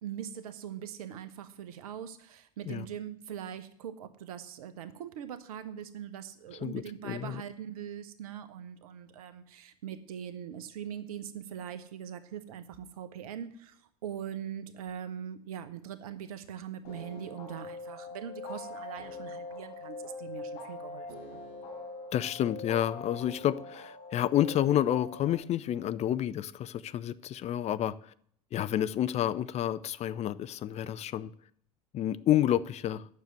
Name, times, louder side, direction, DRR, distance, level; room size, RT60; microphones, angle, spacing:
voice 1, 0.0-21.4, right 9 dB, 65° right, 1.0 m, -42 dB
voice 2, 6.6-7.4 22.1-28.1 28.5-31.3 31.9-33.1, left 11 dB, 35° left, 0.5 m, -29 dB
sound 1, 16.8-25.3, left 3 dB, 50° left, 4.6 m, -43 dB
9.6 x 6.7 x 7.6 m
figure-of-eight pair, 70°, 20 cm